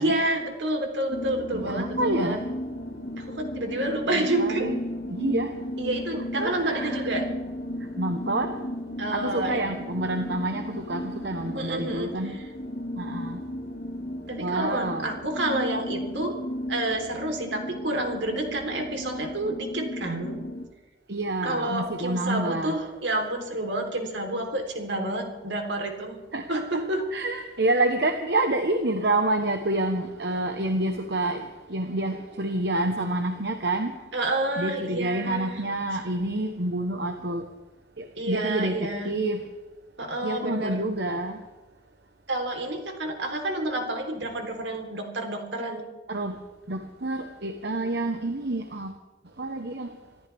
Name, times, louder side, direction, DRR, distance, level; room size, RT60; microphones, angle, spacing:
voice 1, 0.0-2.4 3.2-4.7 5.8-7.3 9.0-9.7 11.5-12.1 14.3-16.4 16.7-20.4 21.4-26.2 26.5-27.1 34.1-35.6 38.2-39.1 40.0-40.8 42.3-45.9, right 1 dB, 80° right, 3 dB, 3.6 m, -29 dB
sound 1, 1.1-20.7, left 1 dB, 55° left, 2.3 m, -35 dB
voice 2, 1.5-2.4 4.1-4.8 5.1-5.6 6.3-7.0 8.0-8.6 9.1-12.4 13.0-13.4 14.4-15.1 21.1-22.8 26.3-26.8 27.1-33.9 34.6-37.4 38.0-39.4 40.2-41.4 46.1-46.4 46.7-49.0 49.4-49.9, right 2 dB, 65° right, 5 dB, 1.2 m, -28 dB
26.5 x 14.0 x 3.5 m, 1.2 s
head